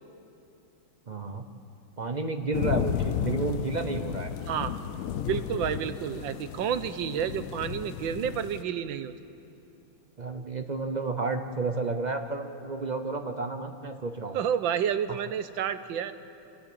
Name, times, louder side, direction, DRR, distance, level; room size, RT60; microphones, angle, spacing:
voice 1, 1.1-1.4 2.0-4.3 10.2-14.4, right 3 dB, 45° right, 6 dB, 0.5 m, -31 dB
sound 1, 2.5-8.6, left 9 dB, 75° left, 0.7 m, -33 dB
voice 2, 5.2-9.1 14.3-16.1, right 8 dB, 80° right, 12 dB, 1.5 m, -30 dB
27.5 x 13.0 x 8.7 m, 2.7 s
omnidirectional pair, 2.1 m